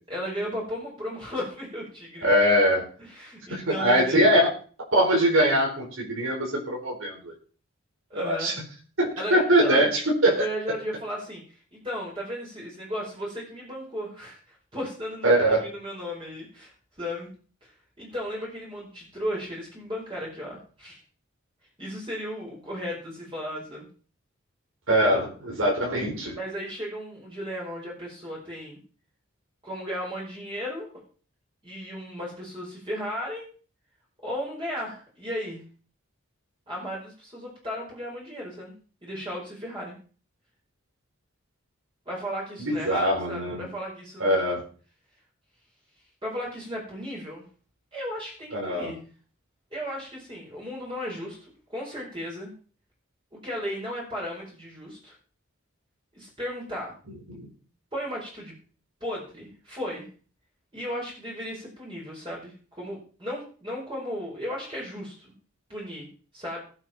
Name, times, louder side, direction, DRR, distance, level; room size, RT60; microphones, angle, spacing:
voice 1, 0.1-2.3 3.0-4.3 8.1-8.5 9.2-9.9 10.2-15.3 15.6-16.7 17.0-17.3 17.6-17.7 18.0-21.0 21.8-23.9 26.3-28.8 29.6-30.9 31.6-33.5 34.2-35.6 36.7-38.7 39.0-40.0 42.0-44.5 46.2-47.4 47.9-49.0 49.7-51.4 51.7-52.5 53.3-55.1 56.2-56.9 57.9-58.5 59.0-60.0 60.7-65.1 65.7-66.1 66.3-66.6, equal, 25° right, -4 dB, 4.9 m, -35 dB
voice 2, 2.2-2.9 3.5-4.4 5.0-7.1 8.1-8.5 9.0-10.4 15.2-15.6 24.9-26.4 42.7-43.7 44.2-44.6 48.5-48.9 57.3-57.5, equal, 80° right, -1 dB, 4.7 m, -22 dB
20.0 x 8.1 x 4.4 m, 0.40 s
head